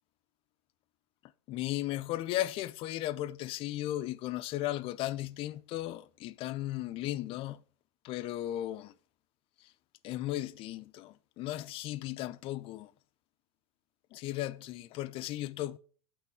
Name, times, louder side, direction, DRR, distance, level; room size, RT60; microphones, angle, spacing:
voice 1, 1.5-7.6 8.0-8.9 10.0-12.9 14.1-15.8, left 15 dB, 50° left, 0.5 m, -36 dB
8.4 x 5.9 x 3.5 m
hypercardioid pair, 90°, 12 cm